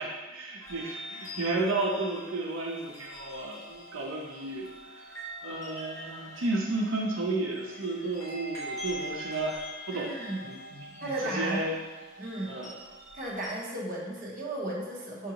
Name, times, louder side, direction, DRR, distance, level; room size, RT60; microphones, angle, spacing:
voice 1, 0.0-5.1 5.4-9.6 9.9-10.1 10.4-11.8 12.5-12.7, right 2 dB, 80° right, -2 dB, 0.6 m, -32 dB
sound 1, 0.6-13.5, equal, 15° left, 1.0 m, -44 dB
voice 2, 9.9-10.5 11.0-11.7 12.2-12.5 13.1-15.3, right 1 dB, 40° right, -3 dB, 0.7 m, -34 dB
5.6 x 2.6 x 2.8 m, 1.3 s
head